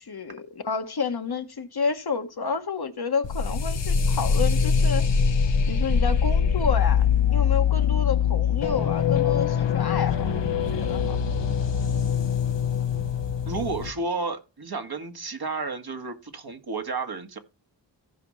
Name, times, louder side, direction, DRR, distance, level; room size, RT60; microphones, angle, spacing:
voice 1, 0.0-5.1 5.7-11.2, left 5 dB, 60° left, 1.4 m, -30 dB
sound 1, 3.2-13.9, left 7 dB, 75° left, 1.1 m, -23 dB
voice 2, 13.5-17.4, right 4 dB, 55° right, 1.7 m, -31 dB
15.0 x 5.2 x 3.1 m
wide cardioid pair, 65°, 43 cm